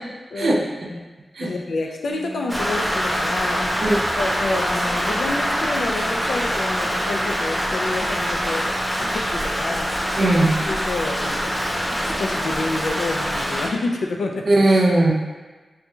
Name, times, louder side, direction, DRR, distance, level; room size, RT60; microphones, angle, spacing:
voice 1, 0.3-1.0 1.4-10.4 10.6-11.7 12.0-14.4, left 2 dB, 90° left, 2 dB, 0.4 m, -29 dB
sound 1, 2.1-13.5, right 2 dB, 30° left, 1.0 m, -39 dB
Rain, 2.5-13.7, equal, 10° left, 0.4 m, -24 dB
voice 2, 10.2-10.5 14.5-15.1, right 2 dB, 55° right, -2 dB, 0.5 m, -17 dB
4.3 x 2.6 x 2.3 m, 1.3 s
wide cardioid pair, 165°, 0 cm